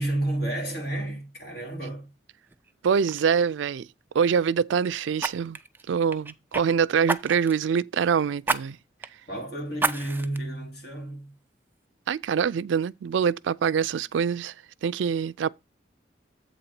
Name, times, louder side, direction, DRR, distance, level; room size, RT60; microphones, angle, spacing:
voice 1, 0.0-2.1 9.3-11.3, right 1 dB, 55° left, 3.1 m, -31 dB
Fire, 2.5-2.7 3.1-3.3 5.2-6.6 7.1-7.6 8.4-8.6 9.0-9.1 9.8-10.4 10.9-11.0, right 3 dB, 10° right, 0.4 m, -29 dB
voice 2, 2.8-3.9 4.1-5.6 5.9-8.8 12.1-14.5 14.8-15.5, right 7 dB, 85° right, 0.3 m, -24 dB
7.9 x 3.9 x 5.8 m
head